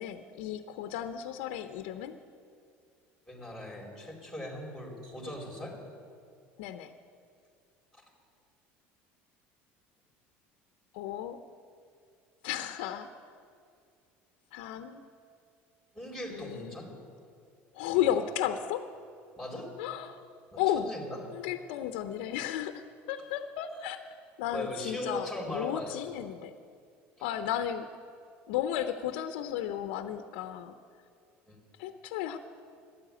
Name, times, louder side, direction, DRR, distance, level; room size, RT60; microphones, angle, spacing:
voice 1, 0.0-2.2 6.6-6.9 10.9-11.4 12.4-13.1 14.5-15.0 16.3-16.8 17.7-18.8 19.8-20.2 20.6-20.9 21.3-24.0 24.4-26.5 27.2-27.9 28.5-30.7 31.8-32.4, left 10 dB, 80° left, 8 dB, 0.7 m, -33 dB
voice 2, 3.3-5.8 7.9-8.0 15.9-17.0 17.9-18.1 19.4-19.7 20.5-21.2 24.5-26.0 27.2-27.3 31.5-31.6, left 1 dB, ahead, -1 dB, 4.3 m, -39 dB
13.0 x 9.5 x 8.8 m, 2.3 s
supercardioid pair, 95°, 6 cm